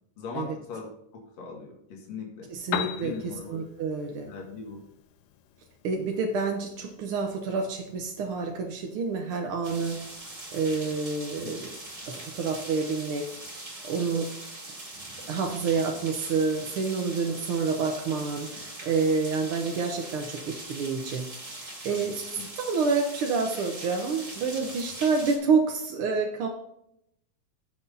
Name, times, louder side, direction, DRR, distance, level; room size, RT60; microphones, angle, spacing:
voice 1, 0.2-2.5 2.9-3.6 4.3-4.8 11.4-11.5 14.0-14.2 21.9-22.1, left 4 dB, 65° left, -2 dB, 3.1 m, -40 dB
Piano, 2.5-10.5, left 10 dB, 85° left, 2.0 m, -41 dB
voice 2, 2.5-3.1 3.5-4.3 5.8-10.1 10.5-11.8 12.1-13.4 13.8-14.3 15.3-21.3 21.5-22.2 22.6-26.5, right 4 dB, 70° right, 2 dB, 1.3 m, -28 dB
sound 1, 9.6-25.4, right 2 dB, 25° right, 2.2 m, -41 dB
16.0 x 6.0 x 2.7 m, 0.77 s
omnidirectional pair, 3.4 m